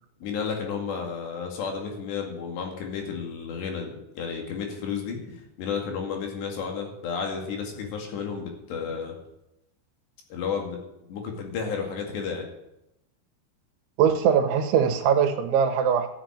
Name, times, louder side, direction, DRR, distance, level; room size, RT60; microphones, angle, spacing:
voice 1, 0.2-9.2 10.3-10.8 11.1-12.5, left 6 dB, 70° left, 2 dB, 4.3 m, -32 dB
voice 2, 14.0-16.1, right 7 dB, 80° right, 6 dB, 3.5 m, -21 dB
14.0 x 7.9 x 8.8 m, 0.88 s
omnidirectional pair, 5.4 m